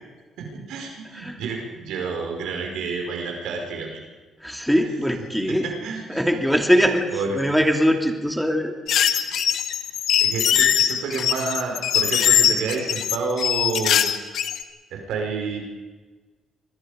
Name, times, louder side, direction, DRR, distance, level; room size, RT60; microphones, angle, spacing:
voice 1, 0.4-4.0 5.5-6.2 7.1-7.4 10.2-14.0 14.9-15.6, right 4 dB, 85° right, 1 dB, 5.2 m, -29 dB
voice 2, 4.4-5.7 6.1-7.1 7.3-8.7, equal, ahead, 3 dB, 2.5 m, -21 dB
sound 1, 8.9-14.6, left 9 dB, 75° left, 1.2 m, -21 dB
25.5 x 20.5 x 5.2 m, 1.3 s
cardioid pair, 90°, 0 cm